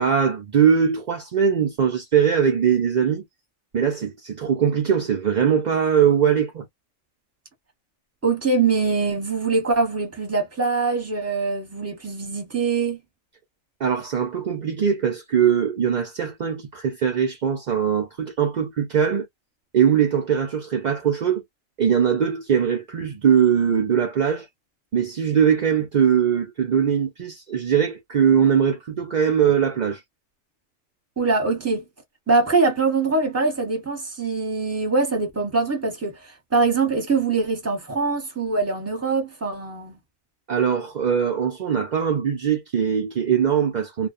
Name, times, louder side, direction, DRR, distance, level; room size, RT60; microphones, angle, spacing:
voice 1, 0.0-3.2 3.7-6.7 13.8-19.3 19.7-21.4 21.8-24.5 24.9-30.0 40.5-44.1, right 7 dB, 65° right, 0.4 m, -21 dB
voice 2, 8.2-13.0 31.2-31.8 32.3-40.0, right 4 dB, 15° right, 0.8 m, -23 dB
2.3 x 2.2 x 2.4 m
omnidirectional pair, 1.4 m